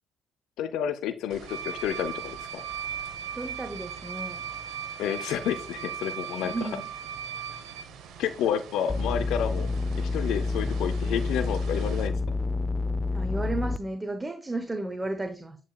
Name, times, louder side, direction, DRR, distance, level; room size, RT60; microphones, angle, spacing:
voice 1, 0.6-2.6 5.0-6.7 8.2-9.7 10.0-12.1, left 9 dB, 70° left, 10 dB, 0.4 m, -30 dB
sound 1, 1.3-12.1, right 7 dB, 70° right, 0.9 m, -47 dB
sound 2, 1.5-7.8, right 8 dB, 90° right, 0.4 m, -37 dB
voice 2, 3.3-4.4 6.4-6.9 13.1-15.6, right 2 dB, 20° right, 7 dB, 0.8 m, -33 dB
sound 3, 8.9-13.8, left 3 dB, 15° left, 0.5 m, -28 dB
8.8 x 4.8 x 2.3 m, 0.35 s
hypercardioid pair, 45°, 0 cm